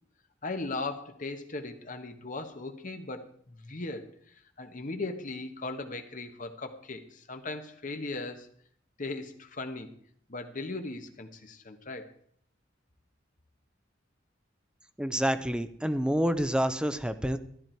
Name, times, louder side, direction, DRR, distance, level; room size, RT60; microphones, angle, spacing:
voice 1, 0.4-8.5 9.0-9.9 10.3-12.2, left 3 dB, 45° left, 7 dB, 1.2 m, -38 dB
voice 2, 15.0-17.4, equal, 5° right, 10 dB, 0.6 m, -28 dB
13.5 x 11.0 x 4.5 m, 0.63 s
head